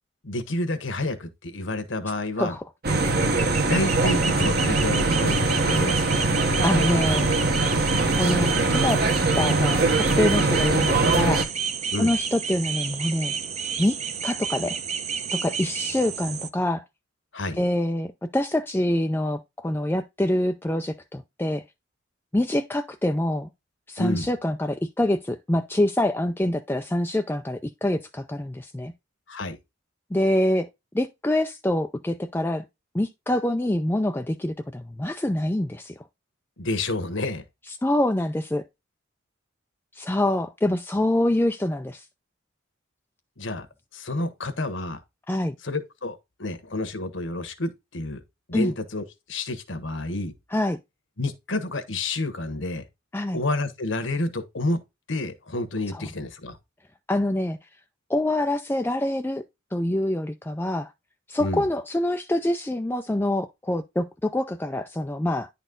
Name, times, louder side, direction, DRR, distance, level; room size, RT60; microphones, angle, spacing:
voice 1, 0.2-2.6 3.6-6.1 11.9-12.1 17.3-17.6 24.0-24.3 29.3-29.6 36.6-37.4 43.4-43.7 43.9-45.0 45.6-48.2 48.5-50.3 51.2-52.8 53.3-54.8 55.1-56.6 61.4-61.6, left 2 dB, 65° left, 1.3 m, -29 dB
sound 1, 2.8-11.5, right 2 dB, 50° right, 1.1 m, -22 dB
sound 2, 2.9-16.5, right 6 dB, 35° right, 0.7 m, -31 dB
voice 2, 6.6-7.4 8.2-9.0 9.3-9.8 10.2-11.5 12.0-13.3 13.8-14.0 14.2-14.8 15.3-16.8 17.6-21.6 22.3-23.5 23.9-28.9 30.1-30.7 30.9-32.6 32.9-36.1 37.8-38.6 40.0-42.1 45.3-45.5 48.5-48.7 50.5-50.8 53.1-53.4 55.9-56.1 57.1-57.6 58.1-59.4 59.7-60.9 61.3-65.5, left 1 dB, 10° left, 0.4 m, -25 dB
10.0 x 4.1 x 3.8 m
head